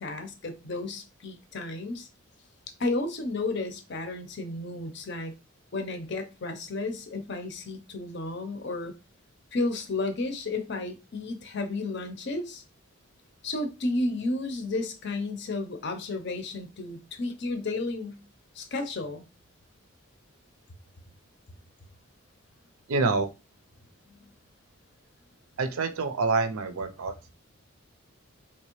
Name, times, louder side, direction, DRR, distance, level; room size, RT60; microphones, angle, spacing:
voice 1, 0.0-2.1 2.8-5.3 5.7-8.9 9.5-12.6 13.4-18.2 18.5-19.3 24.1-24.3, left 2 dB, 55° left, 0.6 m, -32 dB
voice 2, 22.9-23.3 25.6-27.3, right 3 dB, 80° right, 0.5 m, -27 dB
3.4 x 2.8 x 3.0 m
head